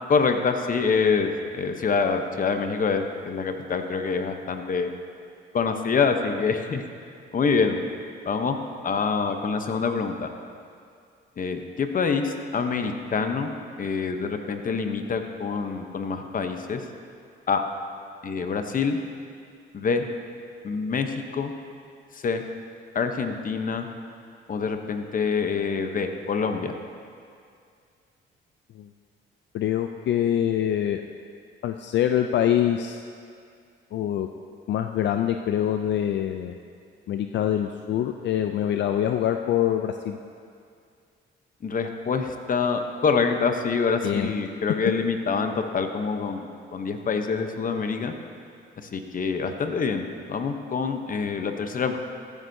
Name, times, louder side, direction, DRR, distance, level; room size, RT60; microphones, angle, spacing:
voice 1, 0.1-4.9 5.5-6.8 7.3-7.8 8.3-8.6 8.8-10.3 11.4-13.5 13.8-16.8 17.5-17.6 18.2-19.0 19.7-20.1 20.6-21.5 22.1-22.4 22.9-23.9 24.5-26.7 41.6-48.1 48.9-52.0, left 5 dB, 45° left, 6 dB, 0.9 m, -26 dB
voice 2, 29.5-31.0 31.6-33.0 33.9-34.3 34.7-36.5 37.1-40.2 44.0-44.3, left 10 dB, 65° left, 6 dB, 0.4 m, -24 dB
14.0 x 9.9 x 2.7 m, 2.3 s
cardioid pair, 90°, 20 cm